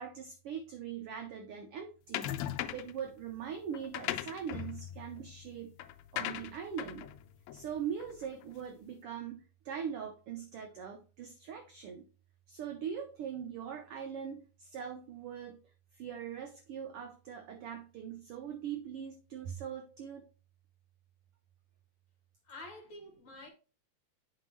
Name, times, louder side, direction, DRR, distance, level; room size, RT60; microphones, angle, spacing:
voice 1, 0.0-2.4 2.7-5.7 6.1-7.1 7.5-12.0 12.5-15.6 15.9-20.2, right 8 dB, 75° right, 1.3 m, -41 dB
sound 1, 2.1-3.0 3.7-8.4, left 12 dB, 80° left, 1.7 m, -39 dB
voice 2, 22.4-23.5, left 2 dB, 45° left, 2.3 m, -48 dB
9.5 x 4.6 x 3.1 m
omnidirectional pair, 3.4 m